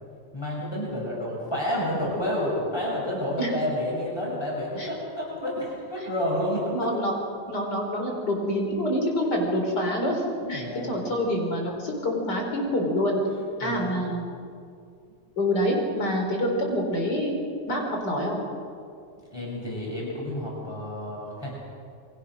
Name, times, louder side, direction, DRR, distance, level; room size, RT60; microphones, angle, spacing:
voice 1, 0.3-6.7 10.4-10.9 13.6-14.0 19.3-21.6, left 1 dB, 15° left, -4 dB, 7.1 m, -30 dB
voice 2, 6.7-7.1 7.5-10.2 10.5-13.2 13.6-14.2 15.4-17.4 17.7-18.4, equal, 80° left, 1 dB, 5.0 m, -26 dB
28.5 x 23.5 x 6.4 m, 2.4 s
omnidirectional pair, 1.8 m